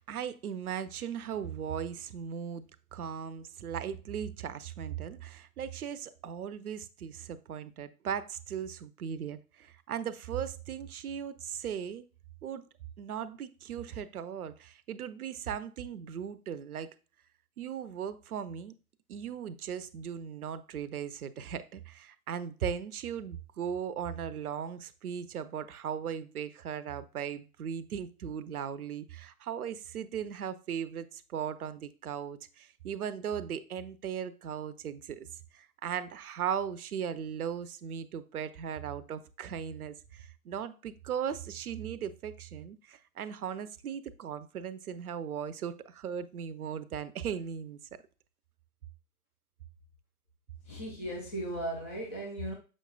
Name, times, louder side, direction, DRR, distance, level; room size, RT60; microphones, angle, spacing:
voice 1, 0.0-2.6 2.9-12.0 12.4-12.6 13.0-16.9 17.6-18.7 19.1-35.3 35.5-47.8, right 8 dB, 70° right, 0.7 m, -38 dB
voice 2, 50.6-52.5, right 1 dB, 10° left, 0.3 m, -36 dB
6.4 x 6.3 x 2.3 m
figure-of-eight pair, 115°, 45 cm